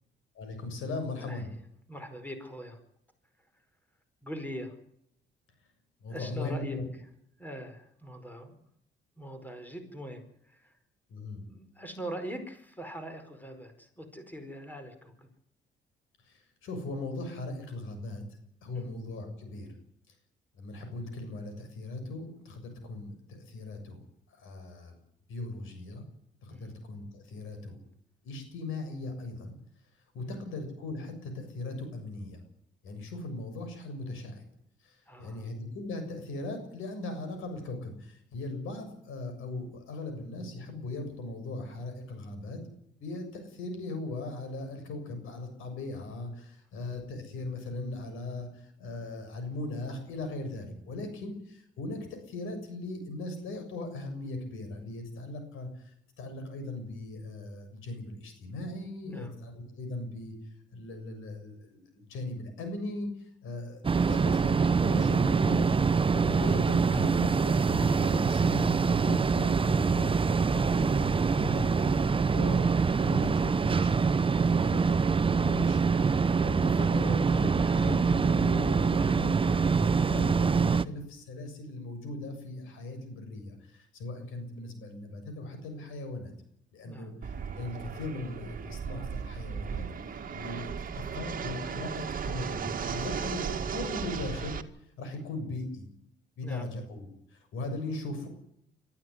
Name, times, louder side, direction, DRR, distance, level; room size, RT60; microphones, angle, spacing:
voice 1, 0.4-1.5 6.0-6.8 11.1-11.5 16.3-18.2 18.6-19.7 20.6-24.0 24.3-24.9 25.3-26.0 26.4-27.8 28.2-29.5 30.1-32.4 32.8-34.4 34.8-42.6 43.0-55.9 56.2-60.4 60.7-63.1 63.4-65.6 66.1-70.1 70.5-74.0 74.4-75.1 75.4-75.9 76.1-86.3 86.7-89.8 90.3-93.4 93.7-94.6 95.0-95.9 96.4-98.3, left 2 dB, 85° left, 7 dB, 7.0 m, -39 dB
voice 2, 1.2-1.5 1.9-2.8 3.5-3.6 4.2-4.8 6.1-6.8 7.4-8.6 9.2-10.8 11.5-15.3 18.7-18.9 26.5-26.7 30.2-30.4 35.1-35.5 59.0-59.4 86.8-87.1 96.4-96.7, equal, 10° left, 8 dB, 4.9 m, -42 dB
sound 1, 63.8-80.8, right 5 dB, 25° right, 0.9 m, -25 dB
Fixed-wing aircraft airplane, 87.2-94.6, right 6 dB, 45° right, 2.1 m, -36 dB
22.5 x 14.5 x 9.6 m, 0.74 s
cardioid pair, 90°, 20 cm